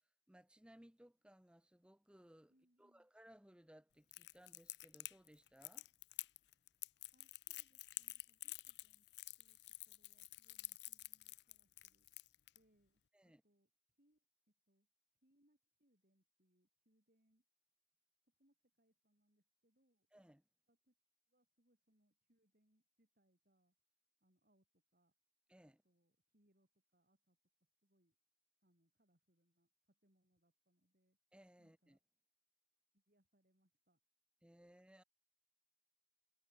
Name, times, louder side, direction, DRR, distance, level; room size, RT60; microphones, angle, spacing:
voice 1, 0.3-2.5 2.8-5.9 13.1-13.4 20.1-20.4 25.5-25.8 31.3-32.0 34.4-35.0, equal, 5° right, 0.7 m, -64 dB
voice 2, 2.5-3.1 7.1-9.1 9.4-9.6 9.9-12.1 12.5-13.7 14.0-14.2 14.7-14.9 15.2-17.4 18.2-20.1 20.7-20.9 21.3-23.7 24.2-25.1 25.6-27.4 27.8-28.2 28.6-31.2 31.6-32.0 32.9-34.0, right 1 dB, 55° right, 5.7 m, -80 dB
Crackle, 4.1-12.6, left 18 dB, 75° left, 0.5 m, -50 dB
head